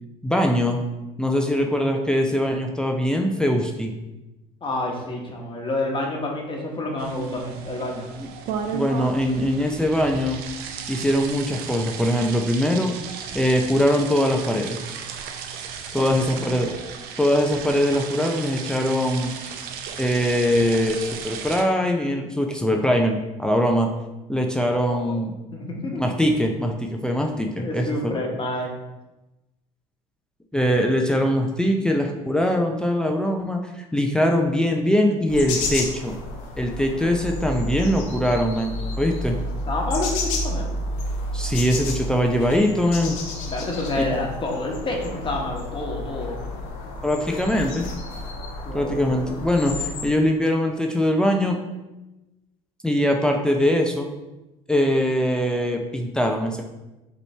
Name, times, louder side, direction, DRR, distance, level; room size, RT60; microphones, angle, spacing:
voice 1, 0.2-0.8 1.2-3.9 8.2-8.3 8.7-10.4 10.9-12.9 13.3-14.8 15.9-16.7 17.2-19.3 20.0-23.9 24.3-25.3 26.0-28.2 30.5-36.2 36.6-39.4 41.3-43.2 47.0-47.9 48.7-51.6 52.8-54.1 54.7-56.6, equal, 5° left, 2 dB, 0.5 m, -22 dB
voice 2, 4.6-8.1 16.0-16.5 24.9-25.1 25.5-26.0 27.5-28.7 39.7-40.7 43.5-46.4 48.6-49.2, left 2 dB, 30° left, 0 dB, 1.1 m, -29 dB
sound 1, 7.0-21.6, right 7 dB, 70° right, 0.6 m, -35 dB
sound 2, 35.3-50.1, left 1 dB, 85° left, 0.8 m, -31 dB
5.3 x 3.1 x 3.3 m, 1.0 s
supercardioid pair, 85°, 16 cm